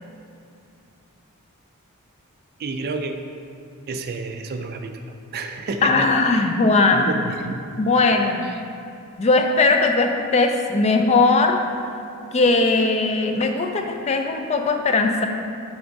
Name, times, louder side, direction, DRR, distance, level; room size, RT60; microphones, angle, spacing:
voice 1, 2.6-3.1 3.9-4.9 5.3-6.1 6.9-7.7, right 3 dB, 45° right, 6 dB, 0.4 m, -29 dB
voice 2, 5.8-7.2 7.8-8.5 9.2-11.6 12.3-15.3, left 3 dB, 30° left, 5 dB, 0.4 m, -19 dB
6.1 x 3.5 x 5.1 m, 2.5 s
head